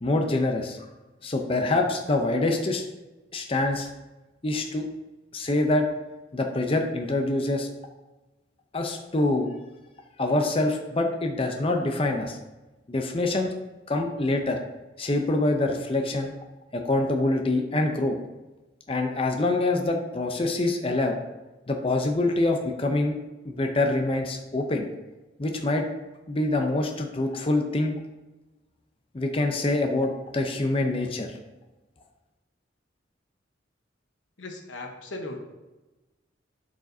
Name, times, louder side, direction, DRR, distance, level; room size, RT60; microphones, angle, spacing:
voice 1, 0.0-0.8 1.2-2.8 3.3-3.9 4.4-4.9 5.3-5.9 6.3-7.7 8.7-9.5 10.2-12.4 12.9-13.5 13.9-14.6 15.0-16.3 16.7-18.2 18.9-21.2 21.7-23.2 23.5-24.9 25.4-25.9 26.3-27.9 29.1-31.4, left 2 dB, 30° left, 3 dB, 0.6 m, -25 dB
voice 2, 34.4-35.4, left 2 dB, 85° left, 3 dB, 1.1 m, -37 dB
11.5 x 4.9 x 2.7 m, 1.1 s
head